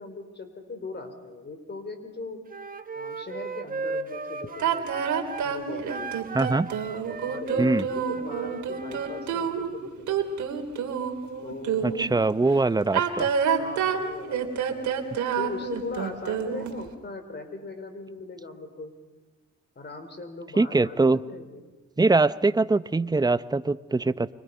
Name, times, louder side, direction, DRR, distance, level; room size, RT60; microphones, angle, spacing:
voice 1, 0.0-2.4 2.9-5.1 5.4-6.1 7.2-10.4 11.4-12.1 13.6-14.9 15.4-18.9 19.8-21.6, left 3 dB, 35° left, 8 dB, 4.3 m, -40 dB
Wind instrument woodwind instrument, 2.5-5.5 5.9-9.3, right 3 dB, 30° right, 1.6 m, -35 dB
sound 1, 4.6-12.1 12.8-16.8, right 7 dB, 70° right, 2.9 m, -28 dB
voice 2, 6.3-6.7 7.6-7.8 11.8-13.3 20.6-21.2 22.0-24.3, right 3 dB, 15° right, 14 dB, 0.7 m, -22 dB
30.0 x 24.5 x 5.6 m, 1.3 s
cardioid pair, 90°, 30 cm